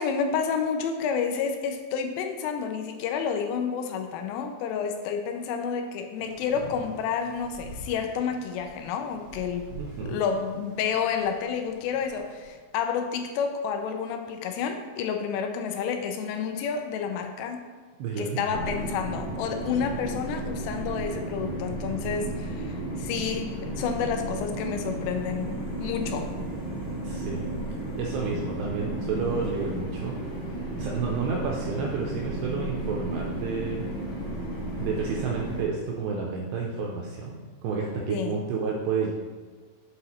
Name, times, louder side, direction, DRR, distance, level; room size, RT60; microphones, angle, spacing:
voice 1, 0.0-9.7 10.0-17.6 18.2-25.5 25.8-26.3 38.1-38.3, left 6 dB, 85° left, 5 dB, 3.2 m, -30 dB
rain and bells, 6.1-12.5, right 1 dB, 55° left, 1.1 m, -46 dB
voice 2, 9.8-10.2 18.0-18.8 27.0-27.4 28.0-30.1 30.8-33.8 34.8-39.1, right 5 dB, 80° right, -1 dB, 2.5 m, -30 dB
sound 1, 18.5-35.6, right 1 dB, 35° left, 2.2 m, -33 dB
8.2 x 4.9 x 4.3 m, 1.5 s
omnidirectional pair, 5.6 m